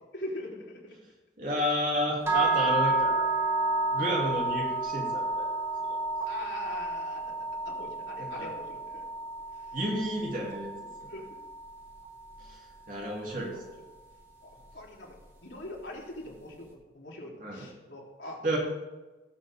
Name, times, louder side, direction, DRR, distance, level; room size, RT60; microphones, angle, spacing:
voice 1, 0.1-1.0 6.3-9.0 9.6-9.7 11.1-11.3 13.1-13.6 14.4-18.4, left 1 dB, 80° left, -3 dB, 3.5 m, -42 dB
voice 2, 1.4-3.2 3.9-5.5 8.4-8.5 9.7-10.7 12.9-13.5 17.4-17.6 18.4-18.6, equal, 45° right, -2 dB, 2.7 m, -30 dB
sound 1, 2.3-12.3, right 3 dB, 15° right, 1.8 m, -31 dB
18.0 x 7.8 x 3.6 m, 1.2 s
head